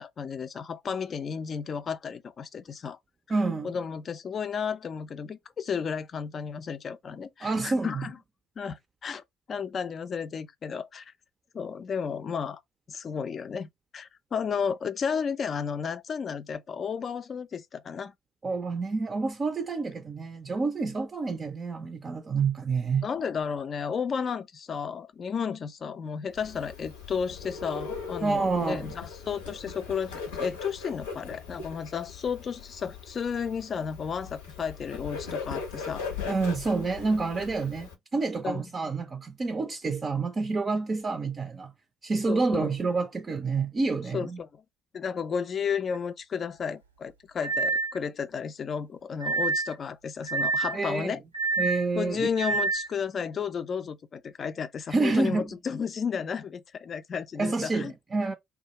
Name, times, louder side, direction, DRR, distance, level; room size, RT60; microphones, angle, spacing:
voice 1, 0.0-3.0 3.6-8.2 8.6-9.2 9.5-11.1 11.5-12.6 12.9-18.1 23.0-36.1 38.4-38.6 42.3-42.7 44.1-44.6 44.9-51.2 52.0-57.9, left 6 dB, 40° left, 0.4 m, -33 dB
voice 2, 3.3-3.7 7.4-8.1 18.4-23.1 28.2-28.9 36.2-41.7 42.0-44.4 50.7-51.2 51.6-52.3 54.9-55.5 57.4-58.3, right 3 dB, 30° right, 0.4 m, -28 dB
Bird, 26.3-37.9, left 5 dB, 75° left, 0.7 m, -39 dB
sound 1, 45.9-46.0 47.4-48.0 49.2-49.7 50.3-50.8 51.3-51.9 52.4-52.9, right 3 dB, 90° right, 0.4 m, -27 dB
2.3 x 2.0 x 2.9 m
figure-of-eight pair, 50°, 0 cm